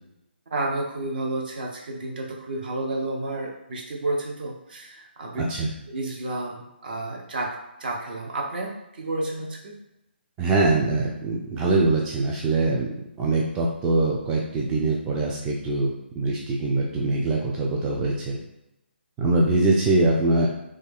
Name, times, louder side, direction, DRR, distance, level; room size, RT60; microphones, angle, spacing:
voice 1, 0.5-5.4 5.9-9.8, right 2 dB, 50° right, 0 dB, 0.8 m, -31 dB
voice 2, 10.4-12.9 13.2-15.9 16.2-18.4 19.2-20.5, right 2 dB, 10° right, -3 dB, 0.3 m, -23 dB
3.1 x 2.4 x 3.5 m, 0.90 s
figure-of-eight pair, 145°, 6 cm